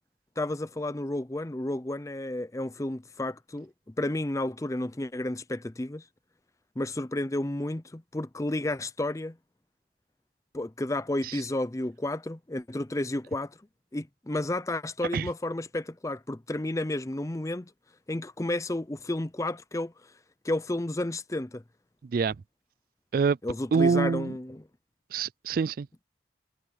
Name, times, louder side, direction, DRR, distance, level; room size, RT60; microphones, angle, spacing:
voice 1, 0.4-6.0 6.8-9.4 10.5-13.6 13.9-17.7 18.1-19.9 20.4-21.6 23.4-24.6, left 1 dB, 20° left, 0.6 m, -31 dB
voice 2, 23.7-24.3 25.1-25.9, right 5 dB, 55° right, 0.3 m, -25 dB
head